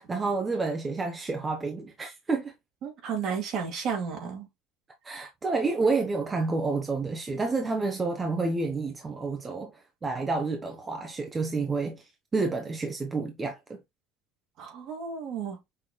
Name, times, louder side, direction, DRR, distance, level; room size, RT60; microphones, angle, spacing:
voice 1, 0.0-2.5 5.0-9.7 10.0-12.0 12.3-13.8, right 3 dB, 20° right, 0.7 m, -29 dB
voice 2, 2.8-4.5 14.6-15.6, right 6 dB, 55° right, 2.1 m, -33 dB
5.6 x 3.0 x 2.2 m
supercardioid pair, 120°, 0 cm